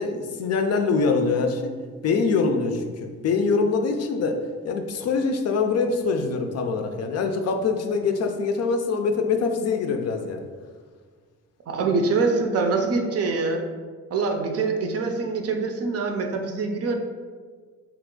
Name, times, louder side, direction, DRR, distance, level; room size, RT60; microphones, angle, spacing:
voice 1, 0.0-1.7 2.0-4.4 4.6-10.4, left 4 dB, 55° left, 5 dB, 0.4 m, -24 dB
voice 2, 11.7-13.7 14.1-17.0, right 4 dB, 55° right, 4 dB, 0.5 m, -24 dB
2.9 x 2.4 x 3.7 m, 1.6 s
cardioid pair, 90°, 30 cm